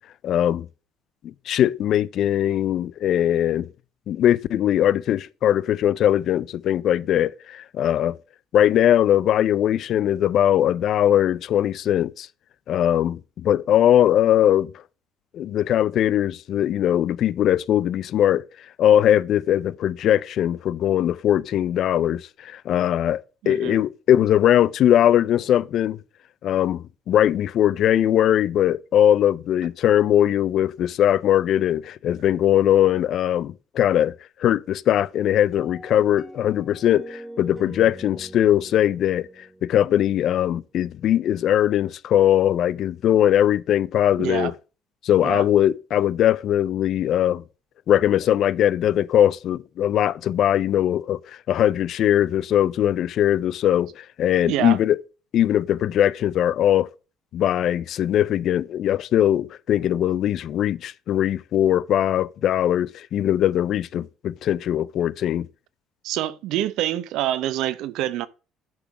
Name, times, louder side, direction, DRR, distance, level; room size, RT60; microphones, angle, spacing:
voice 1, 0.2-0.7 1.2-3.7 4.1-8.2 8.5-12.3 12.7-14.7 15.3-18.4 18.8-26.0 26.4-34.1 34.4-39.3 39.6-44.5 45.0-47.4 47.9-51.2 51.5-55.0 55.3-56.9 57.3-65.5, left 11 dB, 50° left, 0.4 m, -20 dB
voice 2, 23.4-23.8 44.2-44.5 45.2-45.5 54.4-54.8 66.0-68.3, right 13 dB, 70° right, 0.6 m, -26 dB
sound 1, 35.5-40.7, right 1 dB, 5° right, 0.8 m, -43 dB
10.5 x 3.7 x 5.9 m
cardioid pair, 155°, 0 cm